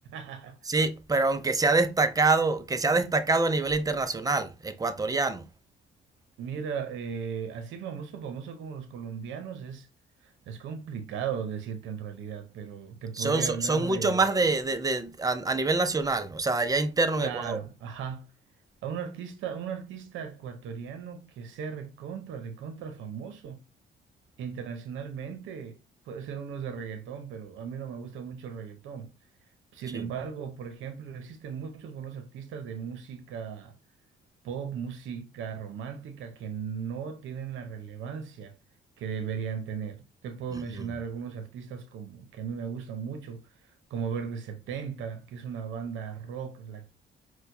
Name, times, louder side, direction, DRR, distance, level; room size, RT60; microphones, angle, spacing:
voice 1, 0.0-0.6 6.4-9.9 10.2-14.2 17.2-18.3 18.8-23.6 24.4-25.8 26.1-29.1 29.7-33.7 34.4-38.6 39.0-46.9, right 7 dB, 80° right, 0.7 m, -37 dB
voice 2, 0.7-5.4 13.2-17.6 29.9-30.0 40.5-40.8, right 3 dB, 20° right, 0.5 m, -26 dB
4.4 x 2.2 x 2.6 m
cardioid pair, 90°, 20 cm